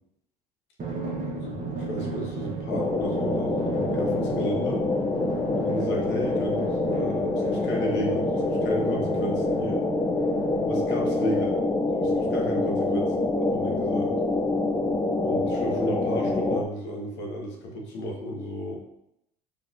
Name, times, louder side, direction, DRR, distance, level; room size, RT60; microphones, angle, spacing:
Drum, 0.8-11.8, right 4 dB, 40° right, 1.1 m, -35 dB
voice 1, 1.4-4.9 5.5-9.8 10.6-11.6 11.9-14.1 15.2-18.8, equal, 60° left, -1 dB, 1.0 m, -33 dB
sound 1, 2.7-16.6, left 2 dB, 15° left, 0.4 m, -26 dB
4.1 x 3.1 x 2.5 m, 0.80 s
hypercardioid pair, 75°, 21 cm